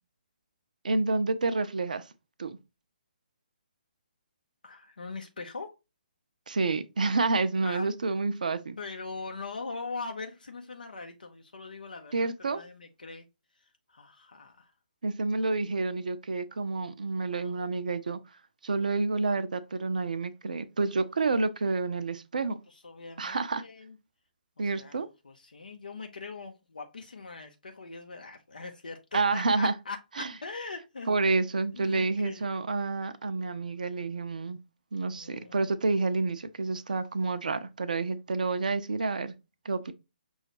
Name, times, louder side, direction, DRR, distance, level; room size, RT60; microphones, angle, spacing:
voice 1, 0.8-2.0 2.4-2.6 6.5-8.8 12.1-12.6 15.0-18.2 18.6-22.6 23.2-23.6 24.6-25.1 29.1-29.7 30.2-30.3 31.1-34.6 34.9-39.3 39.6-39.9, right 3 dB, 55° right, 0.5 m, -29 dB
voice 2, 4.6-5.7 7.6-7.9 8.8-13.3 13.6-14.7 17.3-17.5 22.7-24.0 24.6-30.0 30.4-31.3 31.7-32.4 35.0-35.6, left 4 dB, 65° left, 0.5 m, -42 dB
5.6 x 2.3 x 2.9 m
figure-of-eight pair, 135°, 5 cm